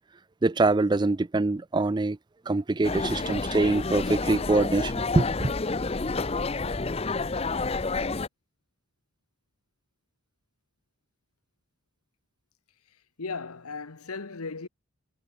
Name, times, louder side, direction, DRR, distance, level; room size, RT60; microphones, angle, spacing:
voice 1, 0.4-2.2 2.5-5.5, right 2 dB, 20° right, 0.3 m, -24 dB
sound 1, 2.8-8.3, left 3 dB, 25° left, 0.6 m, -29 dB
voice 2, 13.2-14.7, left 4 dB, 90° left, 1.2 m, -36 dB
head